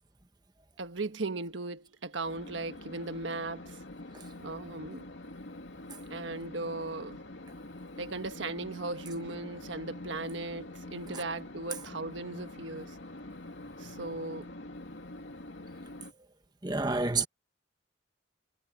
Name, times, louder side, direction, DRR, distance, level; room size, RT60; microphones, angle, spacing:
voice 1, 0.8-3.8 4.4-5.1 6.1-7.2 8.0-13.0 13.8-14.5, right 2 dB, 85° right, 1.4 m, -37 dB
sound 1, 2.2-16.1, left 1 dB, 80° left, 2.5 m, -45 dB
voice 2, 16.6-17.3, right 3 dB, 20° right, 1.2 m, -29 dB
head